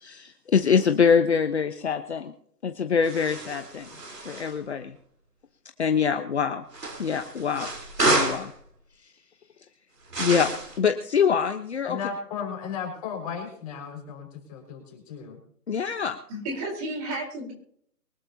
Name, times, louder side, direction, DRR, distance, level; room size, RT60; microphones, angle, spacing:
voice 1, 0.0-2.3 2.6-3.9 4.2-4.9 5.8-6.6 7.0-7.7 8.0-8.5 10.2-10.5 10.8-12.0 15.7-16.2, left 6 dB, 45° left, 7 dB, 1.2 m, -24 dB
sound 1, 3.0-4.5 6.7-8.5 10.1-10.8, right 2 dB, 90° right, 4.3 m, -29 dB
voice 2, 11.8-15.4, left 6 dB, 25° left, 1 dB, 5.6 m, -35 dB
voice 3, 16.3-17.5, right 1 dB, 25° right, 1 dB, 4.3 m, -32 dB
24.0 x 12.5 x 2.9 m, 0.64 s
hypercardioid pair, 160°, 47 cm